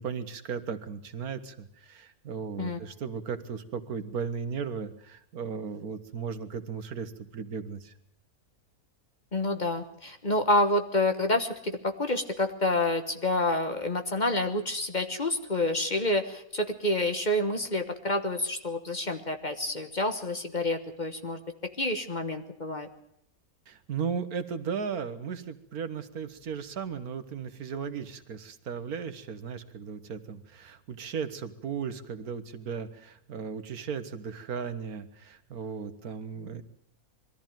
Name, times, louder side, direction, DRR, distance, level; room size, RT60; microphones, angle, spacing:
voice 1, 0.0-7.9 23.7-36.6, right 6 dB, 75° right, 12 dB, 1.7 m, -36 dB
voice 2, 9.3-21.4 21.8-22.9, left 1 dB, 30° left, 7 dB, 1.3 m, -28 dB
22.0 x 14.0 x 9.1 m, 0.75 s
omnidirectional pair, 1.6 m